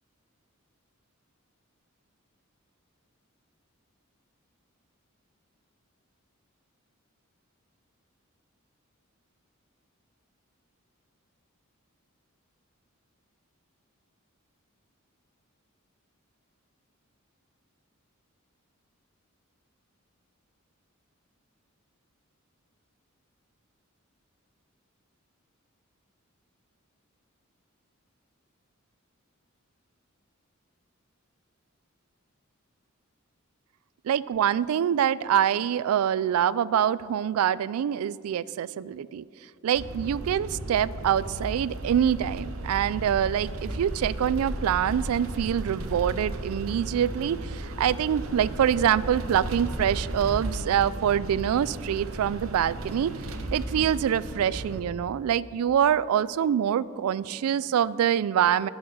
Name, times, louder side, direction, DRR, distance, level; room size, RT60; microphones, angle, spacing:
voice 1, 34.0-39.2 39.6-53.1 53.5-58.7, right 9 dB, 90° right, 18 dB, 0.3 m, -25 dB
sound 1, 39.7-54.8, right 1 dB, 70° right, 0.8 m, -35 dB
11.0 x 6.2 x 6.3 m, 2.3 s
head